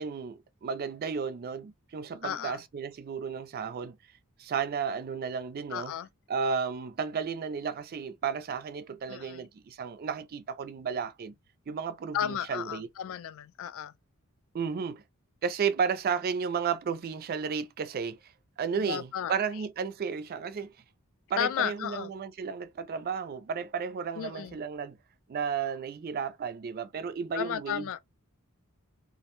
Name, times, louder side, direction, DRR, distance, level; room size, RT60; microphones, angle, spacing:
voice 1, 0.0-4.0 4.4-5.9 6.3-11.3 11.7-12.9 14.5-15.0 15.4-18.2 18.6-20.7 21.3-25.0 25.3-27.9, right 6 dB, 45° right, 0.4 m, -33 dB
voice 2, 2.2-2.6 5.7-6.1 9.1-9.5 12.1-13.9 18.8-19.4 21.4-22.1 24.2-24.6 27.3-28.0, left 9 dB, 65° left, 0.3 m, -33 dB
2.5 x 2.1 x 2.9 m
head